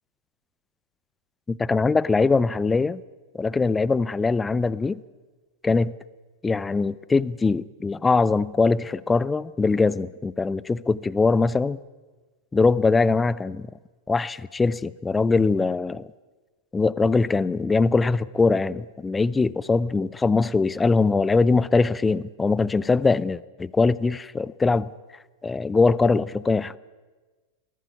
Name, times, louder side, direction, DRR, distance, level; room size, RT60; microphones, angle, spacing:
voice 1, 1.5-3.0 3.3-5.0 5.6-5.9 6.4-11.8 12.5-13.7 14.1-16.1 16.7-24.9 25.4-26.8, left 4 dB, 10° left, 0.6 m, -22 dB
22.0 x 16.0 x 9.3 m
figure-of-eight pair, 90°, 0 cm